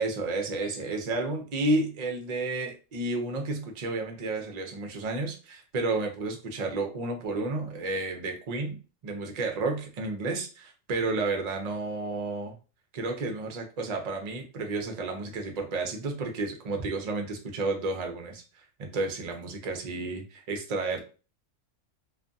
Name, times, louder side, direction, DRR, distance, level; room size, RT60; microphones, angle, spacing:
voice 1, 0.0-8.8 9.0-12.5 12.9-18.4 18.8-21.0, right 2 dB, 50° right, 3 dB, 0.5 m, -31 dB
2.5 x 2.5 x 2.3 m, 0.34 s
omnidirectional pair, 1.3 m